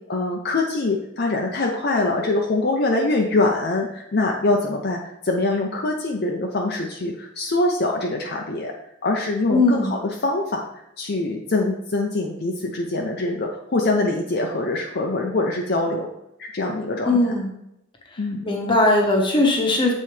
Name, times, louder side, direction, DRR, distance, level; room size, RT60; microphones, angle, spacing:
voice 1, 0.1-8.7 9.0-16.1 16.4-17.2 18.2-18.4, left 2 dB, 50° left, 0 dB, 0.6 m, -24 dB
voice 2, 9.5-9.9 17.0-17.5 18.4-19.9, left 2 dB, 25° left, 0 dB, 1.0 m, -19 dB
7.6 x 4.1 x 3.3 m, 0.82 s
head